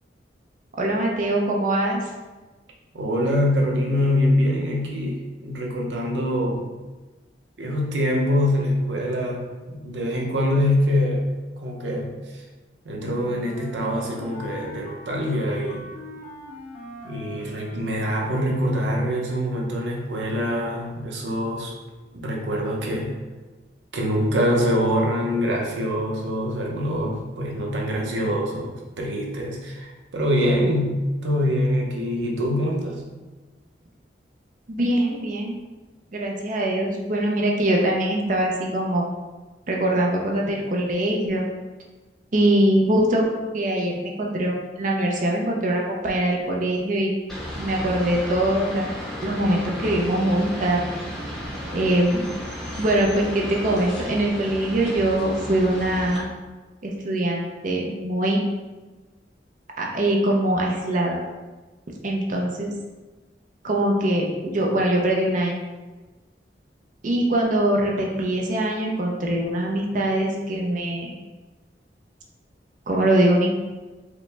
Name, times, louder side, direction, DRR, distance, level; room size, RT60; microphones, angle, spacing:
voice 1, 0.8-2.1 34.7-35.5 36.1-39.1 39.7-41.4 42.3-43.2 43.5-47.1 47.5-48.8 49.2-50.9 51.7-52.3 52.8-56.2 56.8-58.4 59.8-61.2 62.0-62.7 63.6-65.6 67.0-71.1 72.9-73.5, right 1 dB, 45° right, -1 dB, 0.6 m, -22 dB
voice 2, 2.9-6.7 7.6-11.2 11.6-12.4 12.8-15.8 17.0-21.7 22.1-23.2 23.9-28.7 29.0-33.0, equal, 85° right, -1 dB, 0.8 m, -24 dB
Wind instrument woodwind instrument, 12.9-18.5, left 1 dB, 45° left, 0.5 m, -41 dB
sound 1, 47.3-56.2, equal, ahead, 0.8 m, -34 dB
4.9 x 2.2 x 3.3 m, 1.2 s
head